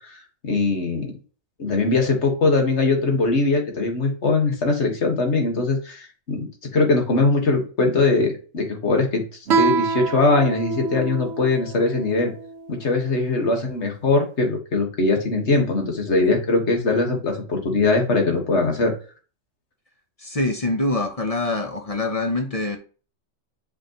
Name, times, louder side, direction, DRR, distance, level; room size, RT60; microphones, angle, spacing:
voice 1, 0.4-1.1 1.6-6.0 6.3-6.5 6.7-9.2 9.6-12.3 12.7-18.9, left 3 dB, 60° left, 3 dB, 1.8 m, -21 dB
Guitar, 9.5-12.7, right 4 dB, 60° right, 0.9 m, -26 dB
voice 2, 20.2-22.8, left 2 dB, 35° left, 4 dB, 0.8 m, -24 dB
6.5 x 5.3 x 3.0 m, 0.37 s
omnidirectional pair, 1.3 m